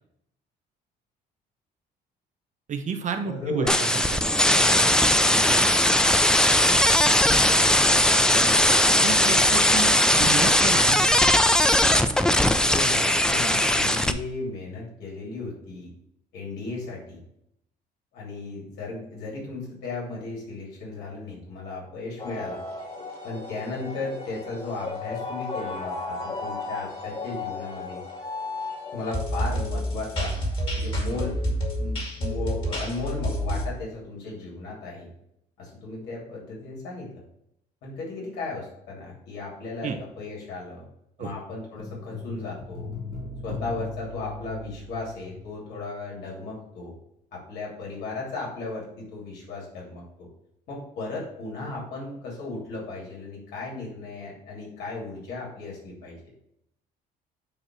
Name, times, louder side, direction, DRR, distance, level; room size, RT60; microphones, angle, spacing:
voice 1, 2.7-4.7 8.8-11.1 39.8-40.0 41.2-41.3 43.5-43.6, right 6 dB, 45° right, 6 dB, 0.8 m, -32 dB
voice 2, 3.3-3.7 9.0-9.8 12.6-15.9 16.3-17.2 18.1-22.6 23.2-28.0 28.9-30.3 30.7-31.4 31.8-35.1 35.6-37.1 37.8-40.9 41.2-42.9 43.4-46.9 47.3-50.3 50.7-56.2, left 3 dB, 80° left, -4 dB, 3.1 m, -35 dB
sound 1, 3.7-14.1, left 1 dB, 5° left, 0.5 m, -19 dB
sound 2, 22.2-33.7, left 1 dB, 30° left, 2.2 m, -31 dB
sound 3, 41.8-46.2 46.5-46.6, left 3 dB, 60° left, 3.3 m, -38 dB
8.9 x 3.0 x 6.2 m, 0.76 s
cardioid pair, 110°, 17 cm